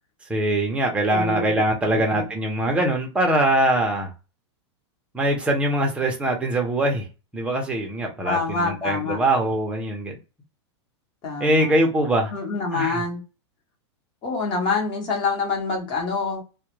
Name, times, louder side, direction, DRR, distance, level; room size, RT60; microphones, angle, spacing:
voice 1, 0.3-4.1 5.1-7.1 7.3-10.1 11.4-12.3 12.7-13.0, right 1 dB, 5° right, 1 dB, 0.6 m, -22 dB
voice 2, 1.1-1.5 2.1-2.3 8.2-9.2 11.2-11.7 12.3-13.2 14.2-16.4, left 4 dB, 30° left, 1 dB, 0.9 m, -26 dB
2.1 x 2.1 x 3.0 m, 0.30 s
supercardioid pair, 145°, 15 cm